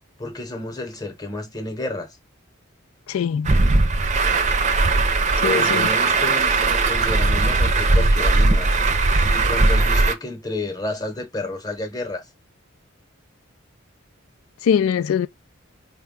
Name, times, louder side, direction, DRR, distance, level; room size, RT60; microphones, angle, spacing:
voice 1, 0.2-2.2 5.4-8.7 9.2-12.3, left 2 dB, 20° left, 0.8 m, -30 dB
voice 2, 3.1-3.5 5.4-5.9 14.6-15.3, left 7 dB, 85° left, 0.3 m, -21 dB
Truck, 3.4-10.1, right 3 dB, 35° right, 0.5 m, -18 dB
4.4 x 2.2 x 3.6 m
head